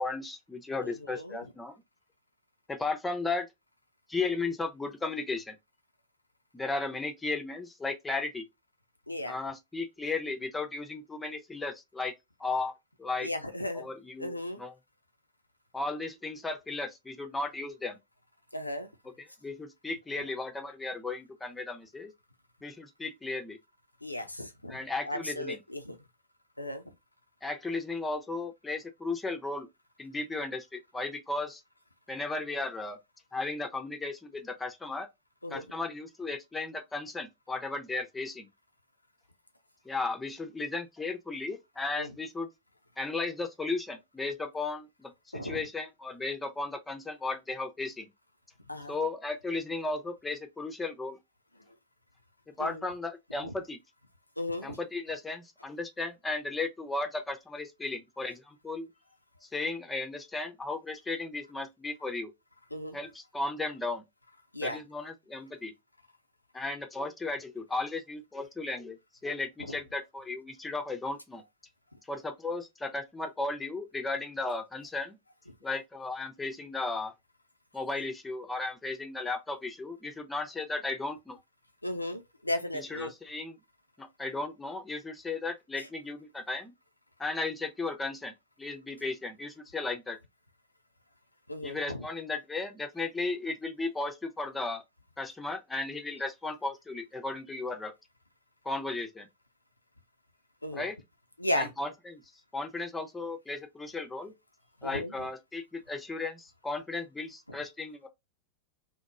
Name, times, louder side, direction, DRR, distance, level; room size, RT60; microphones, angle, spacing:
voice 1, 0.0-1.7 2.7-3.5 4.1-5.6 6.5-8.4 9.2-12.1 12.4-12.7 13.0-13.3 13.7-14.7 15.7-18.0 19.4-22.1 22.6-23.6 24.7-25.6 27.4-29.7 30.0-31.6 32.1-33.0 33.3-35.1 35.5-38.5 39.9-42.5 43.0-48.1 48.9-51.2 52.6-53.8 54.6-58.9 59.4-62.3 62.9-64.0 64.6-65.7 66.5-69.0 69.2-71.4 72.1-75.2 75.6-77.1 77.7-81.4 82.7-83.6 84.0-86.7 87.2-88.3 88.6-90.2 91.6-94.8 95.2-97.9 98.6-99.3 100.7-101.0 101.5-102.2 102.5-104.3 104.8-108.1, left 3 dB, 10° left, 0.4 m, -35 dB
voice 2, 0.8-1.4 9.1-9.4 13.2-13.9 14.2-14.6 18.5-18.9 24.0-24.8 25.0-26.0 26.6-26.8 35.4-35.7 42.0-42.1 45.3-45.6 48.7-48.9 52.6-52.8 53.4-53.5 54.4-54.8 62.7-63.0 64.5-64.8 81.8-83.1 85.8-85.9 91.5-92.1 100.6-100.9 101.4-101.7 104.8-105.3, left 1 dB, 85° left, 0.3 m, -35 dB
2.9 x 2.0 x 2.3 m
figure-of-eight pair, 90°, 0 cm